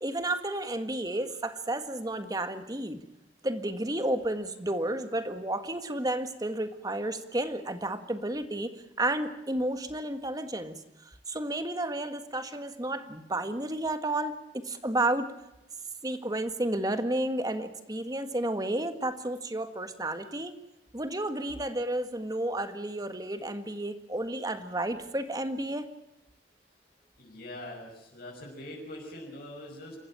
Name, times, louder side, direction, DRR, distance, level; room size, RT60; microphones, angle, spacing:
voice 1, 0.0-3.0 3.4-8.7 9.0-10.8 11.0-14.3 14.6-15.3 16.0-20.6 20.9-25.9, right 1 dB, 20° right, 9 dB, 1.7 m, -31 dB
voice 2, 27.2-30.0, left 1 dB, 55° left, -1 dB, 5.8 m, -43 dB
27.5 x 15.0 x 8.8 m, 0.90 s
head